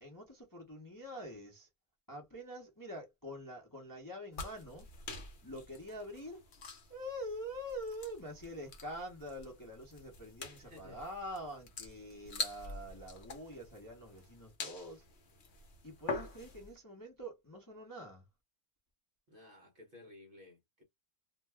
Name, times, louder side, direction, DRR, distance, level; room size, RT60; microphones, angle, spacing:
voice 1, 0.0-1.7 2.1-4.9 5.4-6.4 6.9-15.0 15.8-18.3, equal, 20° left, 0.6 m, -45 dB
sound 1, 4.3-16.7, left 3 dB, 55° left, 1.0 m, -46 dB
voice 2, 10.5-11.0 19.3-20.8, left 2 dB, 50° right, 0.8 m, -56 dB
2.6 x 2.2 x 3.3 m
omnidirectional pair, 1.6 m